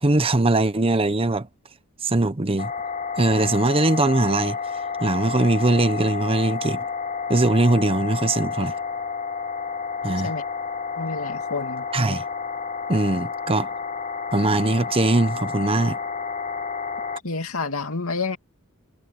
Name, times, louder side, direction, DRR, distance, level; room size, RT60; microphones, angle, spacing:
voice 1, 0.0-1.5 2.0-2.7 3.2-4.6 5.0-6.8 7.3-8.7 10.0-10.3 11.9-12.2 12.9-13.7 14.3-16.0, right 2 dB, 25° right, 0.9 m, -21 dB
sound 1, 2.6-17.2, left 5 dB, 35° left, 5.4 m, -30 dB
voice 2, 11.0-11.9 17.2-18.4, left 3 dB, 70° left, 2.7 m, -29 dB
head